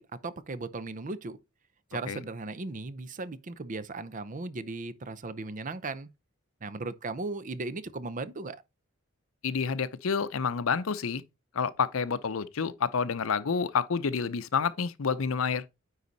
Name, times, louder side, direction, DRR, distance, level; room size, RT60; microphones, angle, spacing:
voice 1, 0.0-1.4 1.9-6.1 6.6-8.6, right 3 dB, 40° right, 0.6 m, -37 dB
voice 2, 9.4-11.2 11.5-15.6, left 5 dB, 70° left, 0.6 m, -29 dB
9.6 x 4.1 x 4.0 m
head